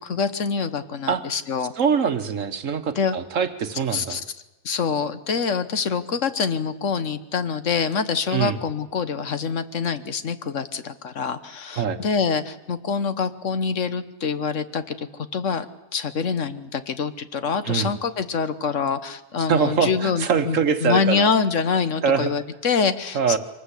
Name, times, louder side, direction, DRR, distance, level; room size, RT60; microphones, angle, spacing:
voice 1, 0.0-1.7 3.0-3.1 3.9-4.2 4.6-15.7 15.9-23.4, left 5 dB, 55° left, 11 dB, 1.4 m, -25 dB
voice 2, 1.8-4.2 8.3-8.6 11.8-12.0 17.6-17.9 19.5-21.3 22.0-22.3 23.1-23.4, right 6 dB, 60° right, 9 dB, 1.5 m, -23 dB
24.5 x 19.0 x 8.3 m, 1.1 s
omnidirectional pair, 1.6 m